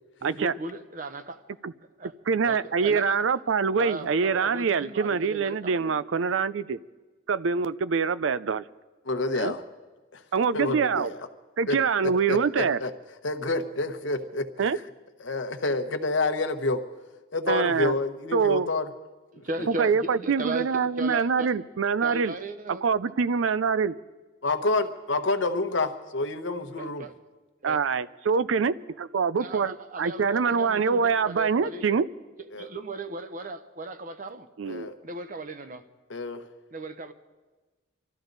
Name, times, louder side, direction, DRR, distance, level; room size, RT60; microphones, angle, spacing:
voice 1, 0.2-1.4 2.0-2.1 2.4-3.1 3.8-6.0 19.4-21.5 22.0-22.8 26.8-27.1 27.6-27.8 29.4-31.8 32.5-34.5 35.0-35.8 36.7-37.1, right 2 dB, 40° right, 9 dB, 0.9 m, -37 dB
voice 2, 2.3-6.8 7.3-8.6 9.3-9.5 10.3-11.1 11.6-12.8 14.6-14.8 17.5-17.9 18.3-18.7 19.7-22.3 22.7-23.9 27.6-32.1 34.6-34.9, right 5 dB, 70° right, 16 dB, 0.5 m, -25 dB
voice 3, 9.1-9.6 10.1-10.2 10.5-11.1 11.7-11.8 12.3-12.9 13.2-14.4 15.2-16.8 17.3-18.9 19.6-19.7 24.4-27.1 32.5-32.7 34.7-34.9 36.1-36.4, left 2 dB, 65° left, 8 dB, 1.1 m, -28 dB
25.0 x 13.5 x 4.0 m, 1.2 s
head